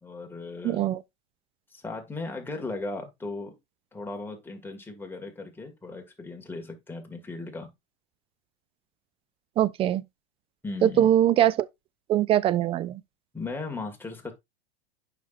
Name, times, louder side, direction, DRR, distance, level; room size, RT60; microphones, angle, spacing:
voice 1, 0.0-0.9 1.7-3.6 3.9-7.7 10.6-11.1 13.3-14.3, left 3 dB, 5° left, 2.0 m, -37 dB
voice 2, 0.6-1.0 9.6-10.0 10.8-11.7 12.1-13.0, right 11 dB, 20° right, 0.3 m, -22 dB
9.2 x 5.9 x 2.5 m
hypercardioid pair, 120°, 33 cm